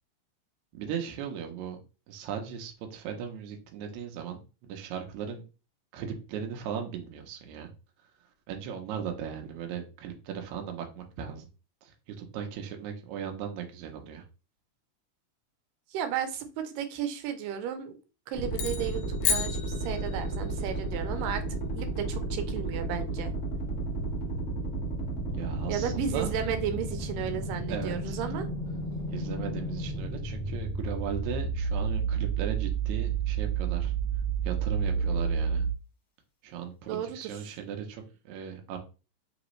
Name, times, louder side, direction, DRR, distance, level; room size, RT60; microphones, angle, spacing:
voice 1, 0.7-1.8 2.1-5.4 5.9-7.7 8.5-11.5 11.8-14.2 25.3-26.4 27.7-28.2 29.1-33.9 34.4-35.7 36.4-38.8, right 8 dB, 70° right, 3 dB, 2.0 m, -37 dB
voice 2, 15.9-18.0 18.3-21.4 21.7-23.3 25.7-28.5 35.1-35.2 36.9-37.4, right 9 dB, 85° right, 8 dB, 2.3 m, -34 dB
sound 1, 18.3-35.7, right 4 dB, 70° left, 0.7 m, -31 dB
sound 2, 18.5-20.5, left 8 dB, 90° left, 2.2 m, -32 dB
5.1 x 3.0 x 3.1 m, 0.32 s
omnidirectional pair, 3.8 m